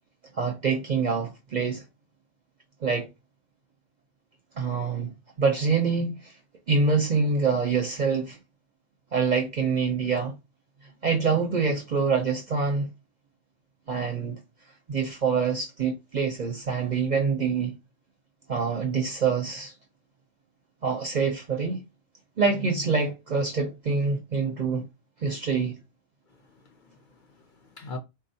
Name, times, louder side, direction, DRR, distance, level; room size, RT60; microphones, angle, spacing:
voice 1, 0.3-1.8 2.8-3.1 4.6-6.3 6.7-8.4 9.1-10.3 11.0-12.9 13.9-14.4 14.9-17.7 18.5-19.7 20.8-21.8 22.4-24.8 25.2-25.7, right 5 dB, 50° right, 0.5 m, -25 dB
voice 2, 26.3-28.0, left 3 dB, 55° left, 0.6 m, -43 dB
3.8 x 2.3 x 2.6 m
omnidirectional pair, 1.2 m